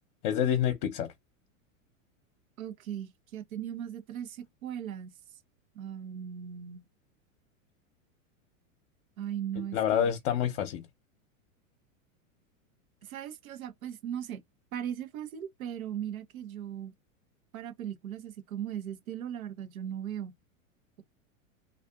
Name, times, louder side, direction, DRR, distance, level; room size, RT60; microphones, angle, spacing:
voice 1, 0.2-1.1 9.6-10.9, left 9 dB, 40° left, 0.7 m, -28 dB
voice 2, 2.6-5.1 5.7-6.8 9.2-10.1 13.0-14.4 14.7-16.9 17.5-20.3, right 10 dB, 85° right, 0.8 m, -38 dB
2.5 x 2.5 x 2.3 m
hypercardioid pair, 125°, 41 cm